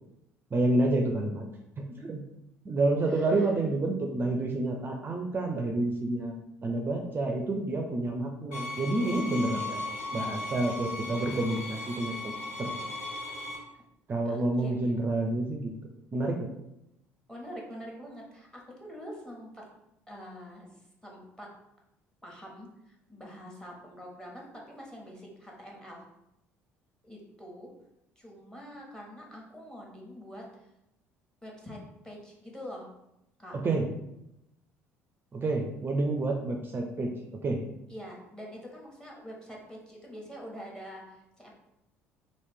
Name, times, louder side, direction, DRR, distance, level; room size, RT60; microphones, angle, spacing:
voice 1, 0.5-1.4 1.8-2.2 2.6-6.3 6.6-12.3 12.6-12.7 14.1-15.7 16.1-16.5 33.5-33.9 35.3-37.6, right 2 dB, 30° right, 2 dB, 0.4 m, -29 dB
voice 2, 3.1-3.4 14.2-14.8 17.3-19.6 20.1-20.7 21.0-21.5 22.2-26.0 27.0-27.7 28.2-30.7 31.4-31.8 32.0-32.9 33.4-33.5 37.9-41.5, equal, 10° left, -2 dB, 1.2 m, -45 dB
sound 1, 8.5-13.6, left 1 dB, 75° left, 0.9 m, -37 dB
3.1 x 2.5 x 3.5 m, 0.84 s
hypercardioid pair, 55°, 7 cm